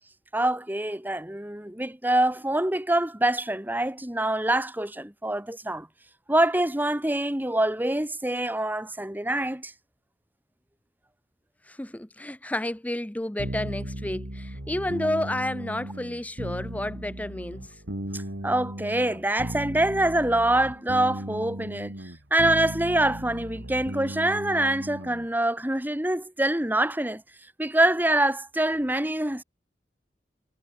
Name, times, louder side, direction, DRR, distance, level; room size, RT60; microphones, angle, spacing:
voice 1, 0.3-5.9 6.3-9.7 18.1-21.9 22.3-27.2 27.6-29.4, right 1 dB, 10° right, 1.6 m, -25 dB
voice 2, 11.7-17.8, left 1 dB, 10° left, 0.7 m, -31 dB
sound 1, 13.4-25.3, right 1 dB, 85° right, 3.5 m, -36 dB
head